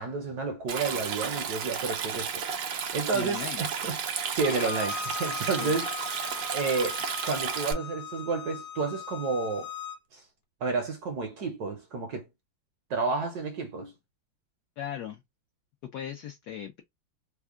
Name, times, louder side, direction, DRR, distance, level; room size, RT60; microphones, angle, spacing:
voice 1, 0.0-2.4 2.9-5.9 6.5-9.7 10.1-10.2 10.6-12.3 12.9-13.9, right 4 dB, 65° right, 1.0 m, -31 dB
Stream, 0.7-7.7, right 7 dB, 85° right, 0.7 m, -33 dB
voice 2, 3.1-3.6 5.6-5.7 14.8-15.2 15.9-16.8, left 9 dB, 80° left, 0.8 m, -37 dB
Bowed string instrument, 4.4-10.0, left 7 dB, 60° left, 1.1 m, -39 dB
3.5 x 2.1 x 3.5 m
omnidirectional pair, 2.2 m